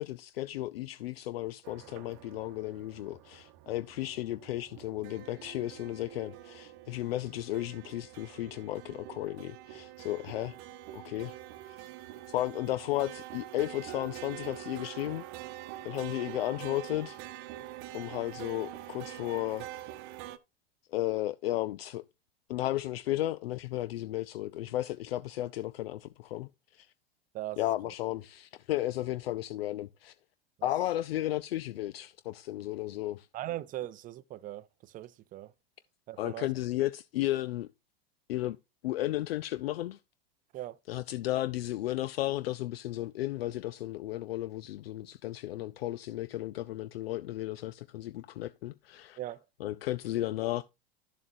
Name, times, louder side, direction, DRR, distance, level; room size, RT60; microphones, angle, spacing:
voice 1, 0.0-10.6 10.9-11.4 11.6-11.9 12.3-15.6 15.8-17.2 17.9-19.7 20.9-22.0 22.5-26.9 27.6-30.1 30.6-33.3 36.2-37.7 38.3-38.6 38.8-40.0 40.9-49.2 49.6-50.6, left 15 dB, 75° left, 0.5 m, -34 dB
sound 1, 1.6-20.4, right 14 dB, 50° right, 0.8 m, -45 dB
voice 2, 33.3-35.5 36.1-36.5 40.5-40.8 49.2-49.4, right 14 dB, 30° right, 0.5 m, -39 dB
12.0 x 7.2 x 2.6 m
hypercardioid pair, 95°, 30 cm